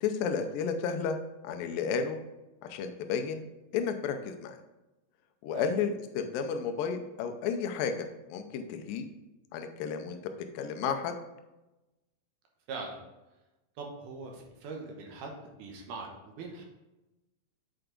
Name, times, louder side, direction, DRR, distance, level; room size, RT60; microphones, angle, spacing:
voice 1, 0.0-1.2 1.4-2.2 2.6-3.4 3.7-4.6 5.4-9.1 9.5-10.2 10.6-11.2, left 6 dB, 80° left, 7 dB, 2.3 m, -32 dB
voice 2, 13.8-16.6, right 3 dB, 70° right, 1 dB, 2.3 m, -42 dB
7.8 x 4.5 x 3.8 m, 1.0 s
omnidirectional pair, 4.2 m